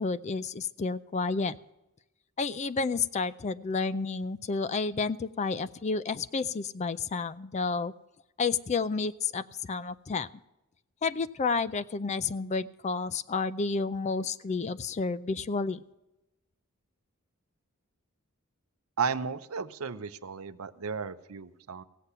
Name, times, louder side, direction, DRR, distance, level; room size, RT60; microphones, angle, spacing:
voice 1, 0.0-1.6 2.4-7.9 8.4-10.3 11.0-15.8, left 4 dB, 35° left, 16 dB, 0.4 m, -30 dB
voice 2, 19.0-21.8, right 5 dB, 80° right, 12 dB, 0.7 m, -34 dB
16.0 x 8.3 x 5.6 m, 0.95 s
head